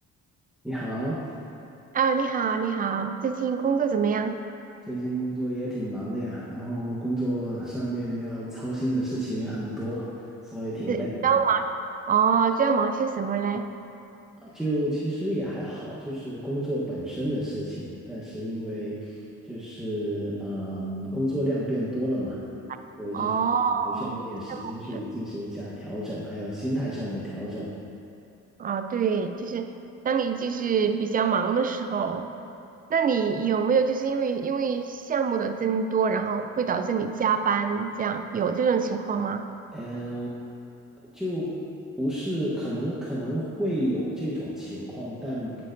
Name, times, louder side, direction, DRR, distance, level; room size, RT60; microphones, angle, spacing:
voice 1, 0.6-1.3 4.9-11.3 14.4-22.4 23.0-23.4 23.8-27.7 39.7-40.3 41.1-41.5 42.0-45.6, equal, ahead, -8 dB, 1.0 m, -31 dB
voice 2, 1.9-4.4 10.9-11.7 12.1-13.7 22.7-22.8 23.1-24.2 24.5-24.7 28.6-29.7 30.0-32.3 32.9-39.5, right 6 dB, 30° right, 8 dB, 0.4 m, -25 dB
9.0 x 6.6 x 2.6 m, 2.7 s
cardioid pair, 90°, 30 cm